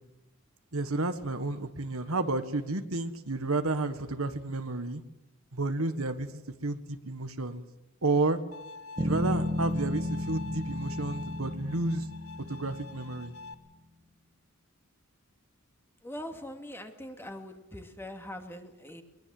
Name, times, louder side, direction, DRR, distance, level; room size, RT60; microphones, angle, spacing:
voice 1, 0.7-5.0 5.5-6.3 6.6-7.7 8.0-8.4 9.0-12.1 12.5-13.3, right 2 dB, 75° right, 9 dB, 1.7 m, -31 dB
Bowed string instrument, 8.5-13.5, left 4 dB, 85° left, 1.6 m, -46 dB
Bass guitar, 9.0-13.3, left 1 dB, 20° right, 2.0 m, -33 dB
voice 2, 16.0-19.0, left 1 dB, 10° left, 5 dB, 2.5 m, -42 dB
23.0 x 21.5 x 7.9 m, 0.97 s
head